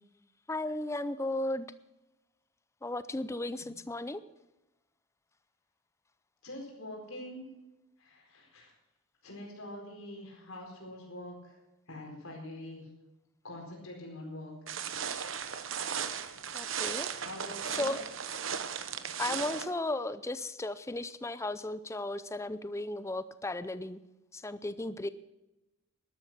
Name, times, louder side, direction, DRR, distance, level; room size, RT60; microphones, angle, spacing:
voice 1, 0.5-1.7 2.8-4.2 16.5-17.1 17.7-18.0 19.2-24.0 24.3-25.1, left 2 dB, 15° left, 14 dB, 0.5 m, -35 dB
voice 2, 6.4-7.5 8.0-8.7 9.2-11.5 11.9-12.9 13.4-15.7 17.2-17.9, left 1 dB, 80° left, 0 dB, 4.5 m, -45 dB
sound 1, 14.7-19.7, right 7 dB, 65° right, 1.0 m, -36 dB
12.5 x 12.0 x 6.1 m, 0.97 s
head